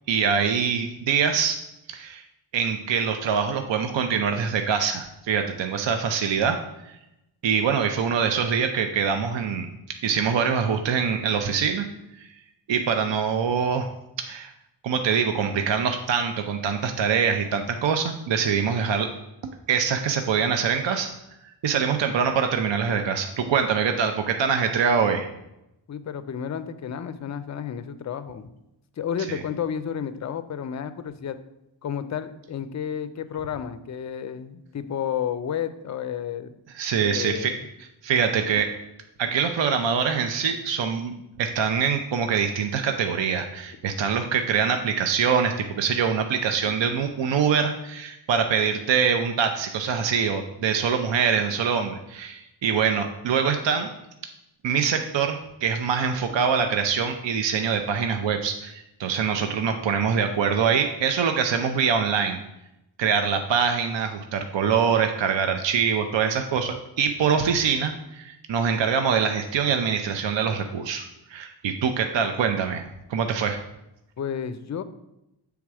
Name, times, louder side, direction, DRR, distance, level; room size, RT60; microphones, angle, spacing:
voice 1, 0.1-1.6 1.9-2.2 2.5-6.6 7.4-9.7 10.0-11.9 12.2-12.3 12.7-13.9 14.2-14.5 14.8-19.1 19.7-21.1 21.6-25.3 29.3-29.4 36.8-37.5 38.0-38.7 39.2-41.1 41.4-53.9 54.6-62.4 63.0-71.0 71.3-72.8 73.1-73.6, right 6 dB, 70° right, 6 dB, 0.6 m, -24 dB
voice 2, 25.9-28.5 29.0-31.4 31.8-36.5 37.0-37.6 74.2-74.8, left 8 dB, 40° left, 12 dB, 0.4 m, -31 dB
7.3 x 3.5 x 4.7 m, 0.88 s
wide cardioid pair, 90°, 47 cm